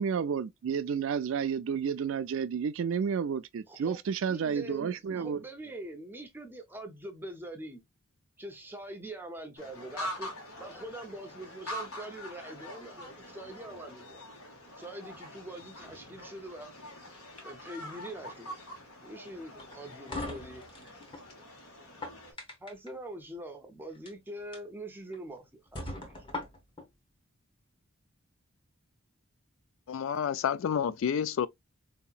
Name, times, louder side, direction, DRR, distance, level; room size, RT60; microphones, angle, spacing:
voice 1, 0.0-5.4, right 6 dB, 65° right, 0.3 m, -31 dB
voice 2, 3.7-4.0 4.3-7.8 8.4-10.3 10.6-14.2 14.8-16.7 17.4-18.6 19.0-20.6 22.6-26.1, right 1 dB, 10° right, 0.5 m, -43 dB
sound 1, 9.6-22.3, equal, 90° left, 1.5 m, -44 dB
sound 2, 19.6-21.3 21.8-22.9 23.9-24.1 24.5-24.6 25.1-25.2 25.7-26.9, left 2 dB, 25° left, 0.8 m, -40 dB
voice 3, 29.9-31.5, left 8 dB, 65° left, 0.3 m, -29 dB
4.0 x 2.8 x 2.3 m
head